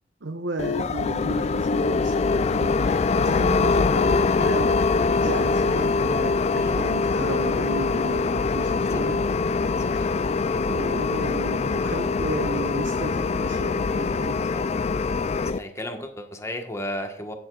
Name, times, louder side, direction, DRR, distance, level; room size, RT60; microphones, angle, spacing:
voice 1, 0.2-9.2 9.9-10.2 10.7-14.4, right 2 dB, 80° right, 5 dB, 1.0 m, -34 dB
sound 1, 0.6-15.6, left 4 dB, 35° left, 0.3 m, -23 dB
voice 2, 9.8-10.1 14.5-14.7 15.4-17.3, left 1 dB, 15° left, 4 dB, 1.4 m, -34 dB
15.0 x 7.0 x 2.4 m, 0.64 s
head